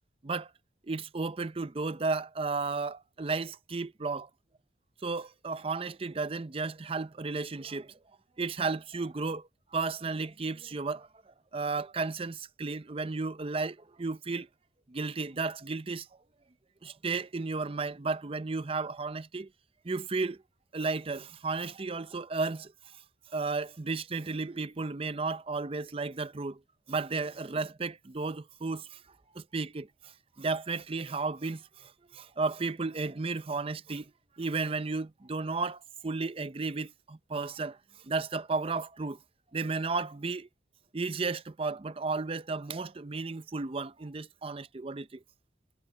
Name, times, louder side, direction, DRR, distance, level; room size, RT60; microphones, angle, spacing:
voice 1, 0.9-4.3 5.0-7.9 8.4-14.5 14.9-16.1 16.8-19.5 19.8-20.4 20.7-22.7 23.3-26.6 26.9-29.0 29.3-30.1 30.4-34.1 34.4-37.8 38.0-39.2 39.5-40.5 40.9-45.2, right 3 dB, 30° right, 0.6 m, -33 dB
head